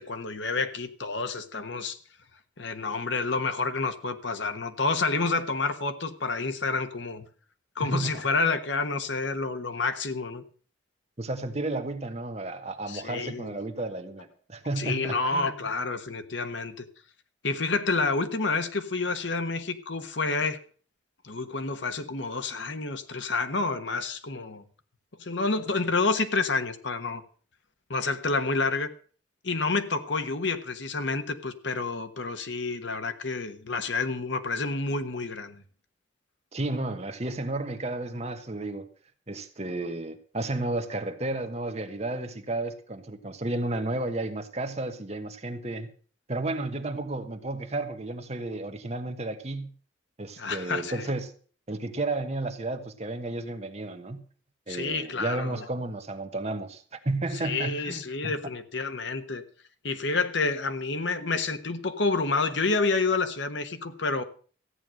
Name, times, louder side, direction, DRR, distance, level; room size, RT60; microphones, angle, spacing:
voice 1, 0.0-2.0 2.6-7.2 7.8-10.4 12.9-13.5 14.8-16.9 17.4-20.6 21.2-24.6 25.2-27.2 27.9-28.9 29.4-35.6 50.4-51.0 54.7-55.6 57.4-59.4 59.8-64.2, left 3 dB, 70° left, 1.3 m, -29 dB
voice 2, 7.8-8.2 11.2-15.6 36.5-38.9 39.3-45.9 46.3-49.7 50.2-51.3 51.7-54.2 54.7-58.3, right 2 dB, 35° right, 1.2 m, -32 dB
14.5 x 9.2 x 6.4 m
head